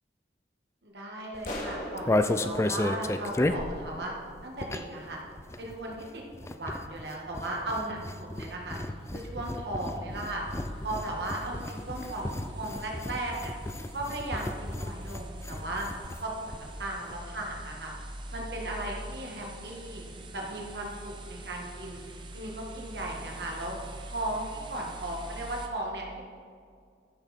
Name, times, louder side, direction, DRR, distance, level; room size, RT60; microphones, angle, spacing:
voice 1, 0.8-4.1 4.4-5.2 5.6-8.8 9.1-10.4 10.8-13.5 13.9-15.9 16.2-17.9 18.3-22.0 22.3-23.8 24.1-26.2, right 1 dB, 70° right, -1 dB, 1.8 m, -36 dB
sound 1, 1.3-5.1 5.3-16.2 16.5-16.6 16.8-17.1, left 2 dB, 15° left, 0.3 m, -33 dB
sound 2, 1.4-4.0, left 1 dB, 50° left, 2.0 m, -40 dB
sound 3, 8.3-25.7, right 1 dB, 25° right, 0.8 m, -44 dB
14.0 x 6.2 x 4.4 m, 2.1 s
head